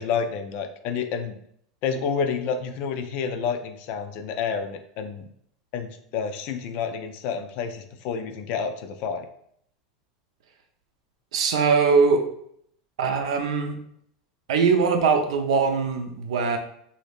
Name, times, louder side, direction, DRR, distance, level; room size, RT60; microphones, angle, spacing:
voice 1, 0.0-1.4 1.8-5.3 5.7-9.3, left 6 dB, 55° left, 7 dB, 0.5 m, -29 dB
voice 2, 11.3-12.2 13.0-13.8 14.5-16.6, right 5 dB, 85° right, 5 dB, 0.6 m, -21 dB
2.7 x 2.7 x 3.4 m, 0.68 s
supercardioid pair, 125°, 3 cm